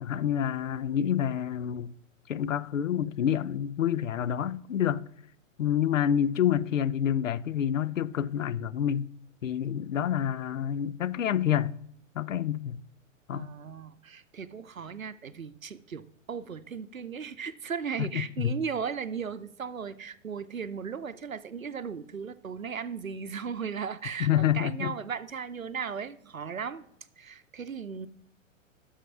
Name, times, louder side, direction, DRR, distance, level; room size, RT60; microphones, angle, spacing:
voice 1, 0.0-1.9 2.3-5.0 5.6-9.1 9.4-11.8 12.1-12.8 13.3-13.5 18.0-18.6 24.2-24.9, left 9 dB, 70° left, 0.5 m, -28 dB
voice 2, 13.3-26.9 27.2-28.1, right 6 dB, 85° right, 0.7 m, -36 dB
9.0 x 6.5 x 5.9 m
figure-of-eight pair, 110°, 40 cm